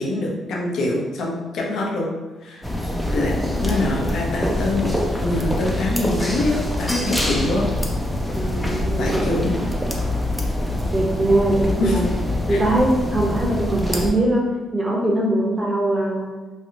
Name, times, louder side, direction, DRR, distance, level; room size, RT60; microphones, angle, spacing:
voice 1, 0.0-2.1 2.4-2.7 3.1-4.9 5.2-7.7 9.0-9.6 11.8-12.0 12.5-12.6, left 2 dB, 70° left, -2 dB, 0.7 m, -24 dB
sound 1, 2.6-14.1, left 1 dB, ahead, 0.5 m, -24 dB
voice 2, 8.4-9.7 10.9-12.1 12.5-16.3, right 1 dB, 20° right, -3 dB, 0.8 m, -21 dB
3.3 x 2.3 x 2.7 m, 1.2 s
cardioid pair, 90°, 0 cm